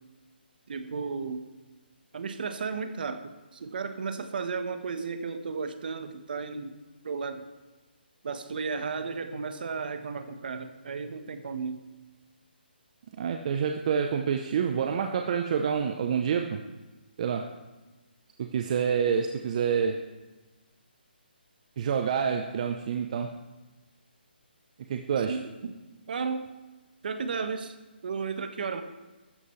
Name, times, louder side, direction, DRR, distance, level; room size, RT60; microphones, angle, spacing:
voice 1, 0.7-1.5 2.1-7.5 8.2-11.8 25.2-25.8 26.1-26.5 27.0-27.8 28.0-28.8, right 5 dB, 60° right, 9 dB, 1.3 m, -34 dB
voice 2, 13.2-16.6 17.2-17.5 18.4-20.0 21.8-23.4 24.9-25.4, right 7 dB, 40° right, 5 dB, 0.8 m, -27 dB
15.0 x 13.0 x 3.3 m, 1.2 s
hypercardioid pair, 155°, 6 cm